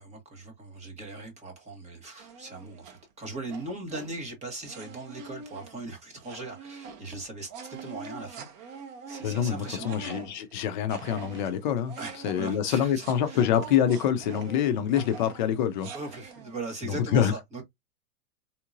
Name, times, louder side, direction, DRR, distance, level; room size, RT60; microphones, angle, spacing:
voice 1, 0.0-10.0 12.0-13.4 15.9-17.6, right 2 dB, 15° right, 1.2 m, -39 dB
sound 1, 2.2-3.0 3.5-4.2 4.6-10.6 10.9-16.6, right 5 dB, 30° right, 0.7 m, -44 dB
voice 2, 9.2-11.9 12.2-15.9 16.9-17.3, left 9 dB, 35° left, 0.4 m, -26 dB
3.8 x 2.8 x 2.5 m
supercardioid pair, 150°, 46 cm